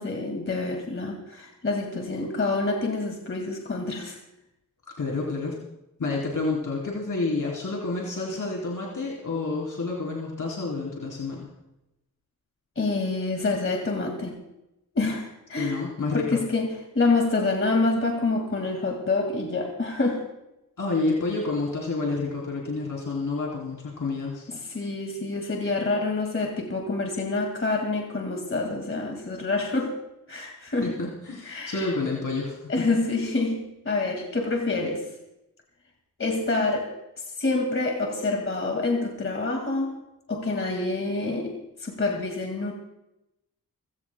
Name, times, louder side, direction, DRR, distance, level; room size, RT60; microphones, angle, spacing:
voice 1, 0.0-4.2 12.8-14.4 14.9-15.8 16.1-20.2 24.5-30.0 30.3-30.9 31.4-31.9 32.7-35.1 36.2-37.0 37.4-40.0 40.3-42.7, left 3 dB, 35° left, 2 dB, 2.0 m, -27 dB
voice 2, 4.9-5.6 6.0-11.5 15.6-16.4 20.8-24.4 30.8-32.9, left 3 dB, 60° left, -3 dB, 3.3 m, -29 dB
29.0 x 16.0 x 2.2 m, 0.90 s
wide cardioid pair, 140°, 35 cm